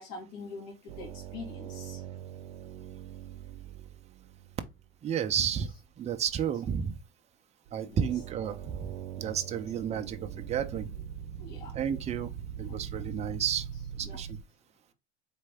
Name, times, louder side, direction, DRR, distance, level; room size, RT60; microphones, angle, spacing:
voice 1, 0.0-2.0 7.7-8.2 11.4-11.8 12.7-12.8 14.0-14.2, left 3 dB, 50° left, 1.8 m, -44 dB
sound 1, 0.9-5.0 7.7-14.4, right 9 dB, 70° right, 0.8 m, -42 dB
voice 2, 5.0-7.0 7.7-10.9 11.7-12.3 12.6-13.7 13.9-14.4, right 8 dB, 20° right, 0.4 m, -32 dB
4.2 x 3.2 x 3.4 m
supercardioid pair, 135°, 34 cm